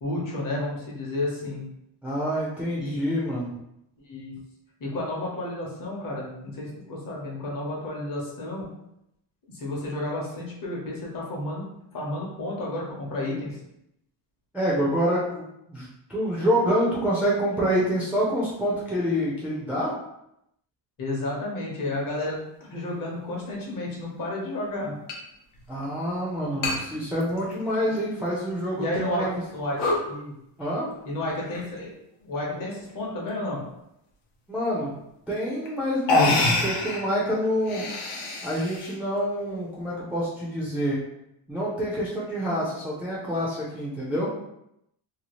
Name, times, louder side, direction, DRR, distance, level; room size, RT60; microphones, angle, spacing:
voice 1, 0.0-1.6 2.8-3.0 4.0-4.3 4.8-8.7 9.5-11.6 11.9-13.6 21.0-25.0 28.7-29.3 29.5-30.3 31.0-31.9 32.2-33.6, left 1 dB, 45° left, -3 dB, 0.9 m, -31 dB
voice 2, 2.0-3.6 14.5-19.9 25.7-29.4 30.6-30.9 34.5-34.9 35.3-37.8 38.4-41.0 41.5-44.3, equal, 5° right, -7 dB, 0.3 m, -27 dB
sound 1, 23.4-23.5 25.1-25.2 25.5-25.6 26.6-26.8 27.2-28.0 28.5-28.6 29.2-29.4 29.7-30.1 31.3-31.8 32.6-33.0 34.9-35.0 35.7-35.8 36.1-37.0 37.5-39.0, left 2 dB, 85° left, 0.9 m, -26 dB
2.8 x 2.3 x 2.9 m, 0.81 s
cardioid pair, 165°, 46 cm